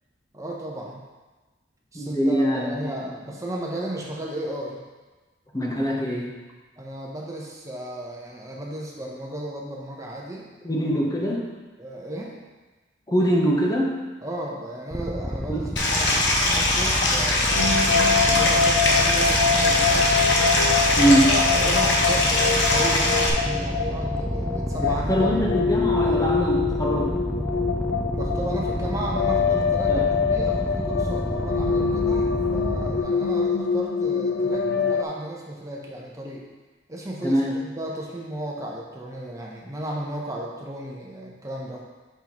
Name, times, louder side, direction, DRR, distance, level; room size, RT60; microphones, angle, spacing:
voice 1, 0.3-1.0 1.9-4.8 6.8-10.5 11.8-12.3 14.2-20.1 21.0-25.4 28.1-36.4 36.9-41.8, right 1 dB, 20° right, -2 dB, 0.8 m, -34 dB
voice 2, 1.9-3.1 5.5-6.3 10.6-11.5 13.1-14.0 15.5-15.7 21.0-21.3 24.8-27.1 29.9-30.1 37.2-37.6, equal, 20° left, -2 dB, 0.8 m, -23 dB
sound 1, 14.9-33.0, equal, 5° left, 0.4 m, -29 dB
Stream, 15.8-23.3, left 2 dB, 90° left, 1.2 m, -22 dB
sound 2, 17.5-35.0, left 5 dB, 65° left, 0.5 m, -25 dB
8.1 x 5.7 x 3.0 m, 1.3 s
head